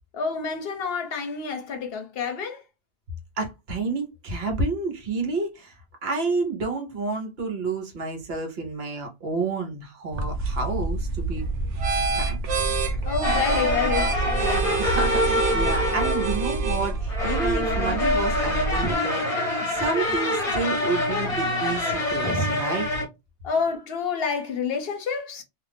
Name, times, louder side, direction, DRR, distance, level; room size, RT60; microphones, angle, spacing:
voice 1, 0.1-2.6 13.0-14.2 23.4-25.4, left 6 dB, 60° left, 0.8 m, -28 dB
voice 2, 3.4-5.7 6.0-11.5 12.1-12.4 14.8-19.2 19.7-22.9, right 3 dB, 65° right, 1.1 m, -29 dB
sound 1, 10.1-18.9, right 3 dB, 90° right, 1.0 m, -26 dB
sound 2, 13.2-23.1, left 1 dB, 35° left, 0.9 m, -26 dB
2.5 x 2.4 x 3.3 m
omnidirectional pair, 1.2 m